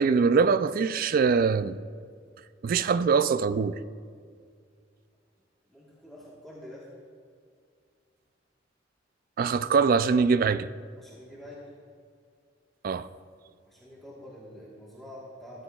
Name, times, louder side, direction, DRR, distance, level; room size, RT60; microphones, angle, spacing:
voice 1, 0.0-1.8 2.6-3.8 9.4-10.7 12.8-13.1, right 5 dB, 50° right, 0.3 m, -23 dB
voice 2, 5.7-6.9 11.0-11.7 13.6-15.6, left 1 dB, ahead, 1.3 m, -46 dB
14.0 x 10.5 x 2.3 m
head